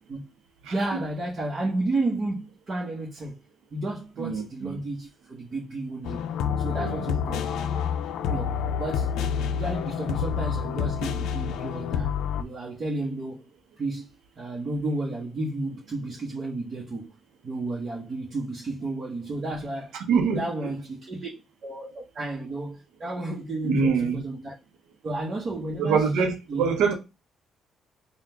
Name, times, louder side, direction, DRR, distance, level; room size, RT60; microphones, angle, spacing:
voice 1, 0.7-3.4 3.7-6.2 6.6-7.6 8.3-9.1 9.5-13.4 13.8-14.1 14.4-17.1 17.4-21.3 21.6-24.5 25.0-26.1 26.5-26.7, right 2 dB, 40° right, 1.1 m, -32 dB
voice 2, 4.2-4.8 6.7-7.1 20.1-20.7 23.6-24.2 25.8-26.9, right 5 dB, 90° right, 0.9 m, -25 dB
sound 1, 6.0-12.4, left 7 dB, 85° left, 0.4 m, -28 dB
3.6 x 2.4 x 4.4 m
cardioid pair, 90°, 0 cm